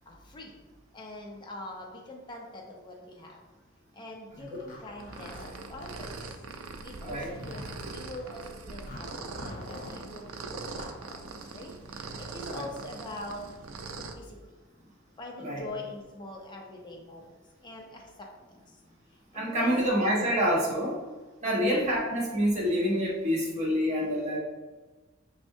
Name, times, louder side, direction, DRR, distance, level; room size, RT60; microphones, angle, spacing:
voice 1, 0.1-0.6 0.9-3.4 3.9-6.3 6.8-13.4 14.0-14.4 15.2-17.3 17.6-18.3 19.3-19.9, left 2 dB, 20° left, 0 dB, 0.5 m, -44 dB
Zipper (clothing), 4.5-6.0 6.8-8.1 8.9-10.0 10.6-11.0, left 1 dB, 45° left, 1.1 m, -44 dB
sound 1, 5.0-14.1, right 3 dB, 80° right, 0.4 m, -42 dB
voice 2, 19.3-21.0 21.4-24.4, equal, 35° right, -5 dB, 1.1 m, -27 dB
5.2 x 3.4 x 2.7 m, 1.3 s
head